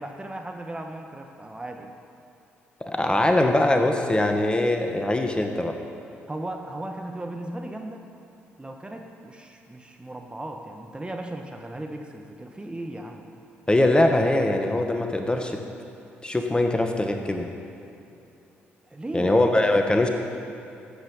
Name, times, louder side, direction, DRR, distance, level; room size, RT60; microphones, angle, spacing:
voice 1, 0.0-1.9 6.3-8.1 8.6-13.2 18.9-19.3, right 1 dB, 15° right, 3 dB, 1.2 m, -36 dB
voice 2, 2.8-5.8 13.7-15.6 16.2-17.5 19.1-20.1, left 1 dB, 15° left, 4 dB, 1.3 m, -22 dB
13.5 x 8.2 x 5.3 m, 2.7 s
hypercardioid pair, 45°, 6 cm